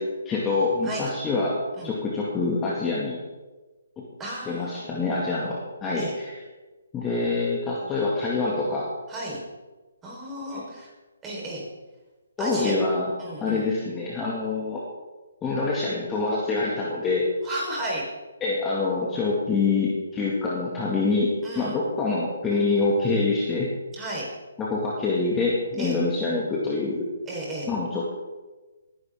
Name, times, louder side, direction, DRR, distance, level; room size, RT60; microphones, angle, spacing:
voice 1, 0.0-1.6 1.8-3.2 4.0-4.1 4.5-6.3 6.9-8.9 10.5-10.6 12.4-13.1 13.4-14.8 15.4-17.3 18.4-23.7 24.6-27.1 27.7-28.1, left 3 dB, 15° left, -4 dB, 2.1 m, -25 dB
voice 2, 4.2-4.8 5.9-6.1 9.1-9.4 10.0-10.9 11.2-11.7 12.4-12.8 13.2-13.7 17.4-18.0 21.4-21.8 23.9-24.3 25.8-26.0 27.3-27.7, right 1 dB, 15° right, -4 dB, 4.4 m, -33 dB
19.0 x 10.5 x 3.7 m, 1.2 s
figure-of-eight pair, 145°, 0 cm